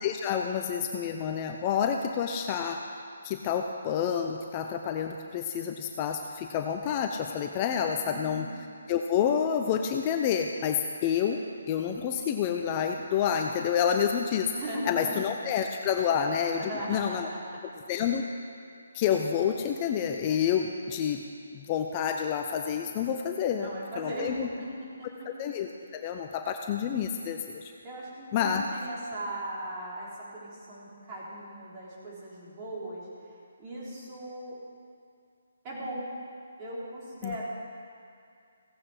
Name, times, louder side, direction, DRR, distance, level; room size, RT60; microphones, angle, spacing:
voice 1, 0.0-2.8 3.2-8.5 8.9-11.4 11.7-14.5 14.9-17.3 17.9-18.2 18.9-21.2 21.5-24.5 25.3-27.7 28.3-28.6 37.2-37.4, left 8 dB, 30° left, 4 dB, 0.6 m, -28 dB
voice 2, 8.0-8.4 14.5-15.3 16.5-17.6 23.5-24.7 25.0-25.1 27.8-33.3 33.6-34.6 35.6-36.1 36.6-37.4, right 1 dB, 25° right, -6 dB, 3.7 m, -38 dB
16.5 x 8.8 x 4.9 m, 2.4 s
figure-of-eight pair, 150°, 0 cm